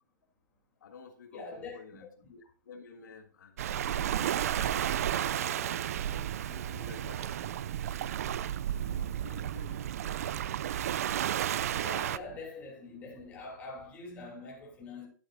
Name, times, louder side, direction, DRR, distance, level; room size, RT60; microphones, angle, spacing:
voice 1, 0.8-8.2 8.7-10.2, left 4 dB, 75° left, 1.6 m, -52 dB
voice 2, 1.3-2.3 11.7-15.1, left 3 dB, 15° left, 2.7 m, -44 dB
Waves surf, 3.6-12.2, right 11 dB, 50° right, 0.4 m, -32 dB
11.0 x 8.6 x 2.6 m
hypercardioid pair, 165°, 10 cm